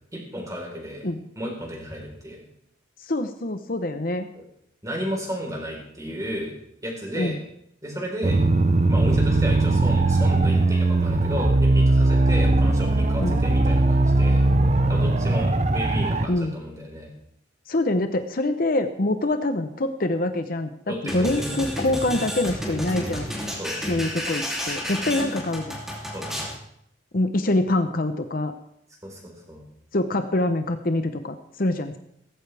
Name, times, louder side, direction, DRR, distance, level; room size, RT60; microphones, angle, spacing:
voice 1, 0.1-1.1 1.4-2.4 4.3-4.4 4.8-6.5 6.8-7.4 7.8-8.4 8.9-14.4 14.9-17.1 20.9-21.5 23.6-23.8 25.1-25.3 26.1-26.5 29.0-29.6, equal, 15° right, -1 dB, 4.2 m, -33 dB
voice 2, 3.0-4.3 7.1-7.4 13.2-13.4 16.3-16.6 17.7-23.3 23.9-25.8 27.1-28.5 29.9-32.0, left 2 dB, 50° left, 8 dB, 0.8 m, -25 dB
sound 1, 8.2-16.3, right 2 dB, 35° right, 0.8 m, -20 dB
sound 2, 21.1-26.6, equal, ahead, 2.9 m, -31 dB
17.0 x 15.0 x 3.5 m, 0.75 s
head